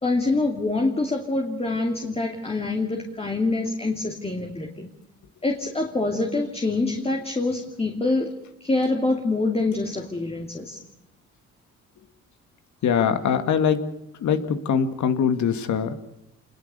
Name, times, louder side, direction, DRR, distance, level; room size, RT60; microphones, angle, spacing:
voice 1, 0.0-4.9 5.4-8.3 8.6-10.8, left 2 dB, 20° left, 2 dB, 2.7 m, -25 dB
voice 2, 12.8-13.8 14.2-15.9, left 7 dB, 70° left, 9 dB, 2.2 m, -22 dB
26.5 x 20.5 x 6.9 m, 0.82 s
cardioid pair, 90°, 30 cm